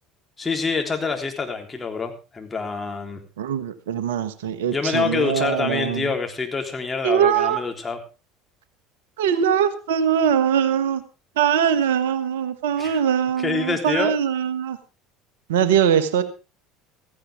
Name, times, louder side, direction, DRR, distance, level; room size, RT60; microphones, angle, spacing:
voice 1, 0.4-3.2 4.6-8.0 12.8-13.0 13.4-14.1, left 4 dB, 20° left, 3 dB, 3.6 m, -26 dB
voice 2, 3.4-6.1 7.0-7.6 9.2-11.0 11.4-14.8 15.5-16.2, right 8 dB, 70° right, 12 dB, 1.3 m, -22 dB
16.5 x 15.0 x 3.6 m, 0.32 s
figure-of-eight pair, 70°, 0 cm